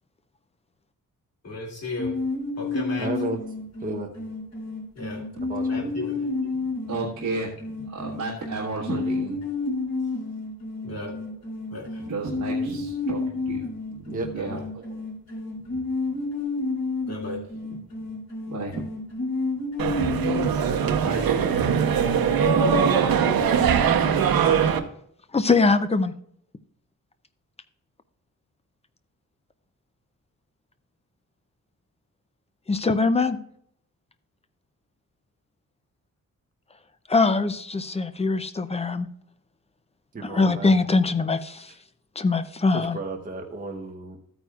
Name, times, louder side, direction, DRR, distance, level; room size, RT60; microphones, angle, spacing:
voice 1, 1.4-2.2 2.6-3.1 5.0-5.2 5.7-6.2 10.8-11.2 11.7-12.0 14.3-14.6 17.1-17.4, left 2 dB, 45° left, -3 dB, 2.5 m, -35 dB
sound 1, 2.0-20.5, left 3 dB, 85° left, 3.1 m, -31 dB
voice 2, 3.0-3.4 3.8-4.1 5.5-5.9 14.1-14.3 40.1-40.7 42.7-44.2, right 3 dB, 25° right, 1 dB, 0.8 m, -33 dB
voice 3, 6.8-9.4 12.0-15.0 17.7-17.8 18.5-18.8 21.0-21.6 23.3-23.5, right 3 dB, 55° right, -5 dB, 1.5 m, -33 dB
sound 2, 19.8-24.8, right 7 dB, 85° right, 0.9 m, -21 dB
voice 4, 25.3-26.1 32.7-33.4 37.1-39.1 40.2-41.7 42.2-43.0, left 3 dB, 20° left, 11 dB, 0.4 m, -22 dB
13.0 x 9.1 x 2.3 m, 0.69 s
wide cardioid pair, 165°, 35 cm